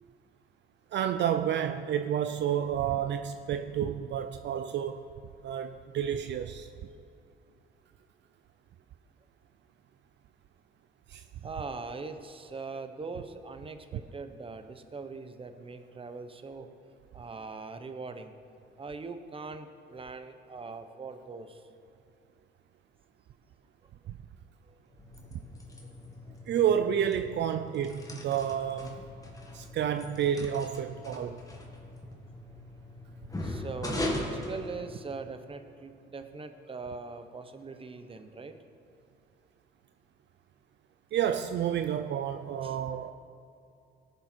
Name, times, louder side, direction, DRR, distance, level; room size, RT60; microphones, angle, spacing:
voice 1, 0.9-5.1 5.4-6.7 11.1-11.2 24.1-24.2 26.5-29.0 29.5-31.4 41.1-43.1, right 9 dB, 65° right, 0.5 m, -30 dB
voice 2, 11.4-16.7 17.1-18.3 18.8-21.6 24.7-24.8 33.4-38.5 42.6-42.8, right 4 dB, 25° right, 0.9 m, -41 dB
sound 1, 24.9-35.4, left 1 dB, 15° left, 1.6 m, -40 dB
18.5 x 6.8 x 4.5 m
cardioid pair, 90°, 20 cm